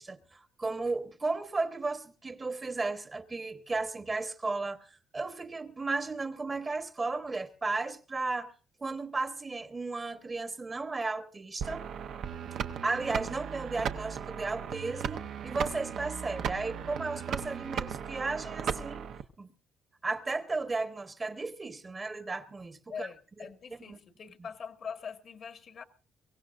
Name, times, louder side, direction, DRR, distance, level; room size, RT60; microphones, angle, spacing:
voice 1, 0.0-8.5 8.8-11.9 12.8-19.1 19.4-19.5 20.0-23.1 23.9-24.0, right 3 dB, 30° right, 1.2 m, -34 dB
sound 1, 11.6-19.2, right 8 dB, 70° right, 0.8 m, -36 dB
voice 2, 16.5-17.1 17.5-17.7 22.9-25.8, left 6 dB, 55° left, 1.6 m, -44 dB
23.0 x 16.0 x 2.5 m
cardioid pair, 90°, 0 cm